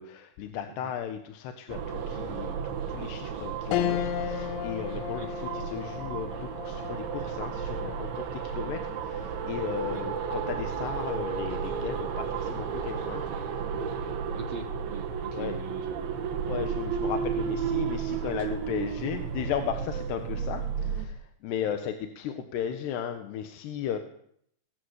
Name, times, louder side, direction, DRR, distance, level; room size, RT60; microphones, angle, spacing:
voice 1, 0.0-13.3 15.3-15.5 16.4-24.0, left 9 dB, 70° left, 7 dB, 3.3 m, -36 dB
sound 1, 1.7-21.1, right 6 dB, 75° right, 4.3 m, -33 dB
sound 2, 3.7-13.3 13.8-13.9 15.2-15.7, left 12 dB, 90° left, 3.8 m, -37 dB
voice 2, 14.3-16.3, right 5 dB, 50° right, 6 dB, 2.0 m, -41 dB
21.5 x 16.5 x 8.2 m, 0.68 s
omnidirectional pair, 5.3 m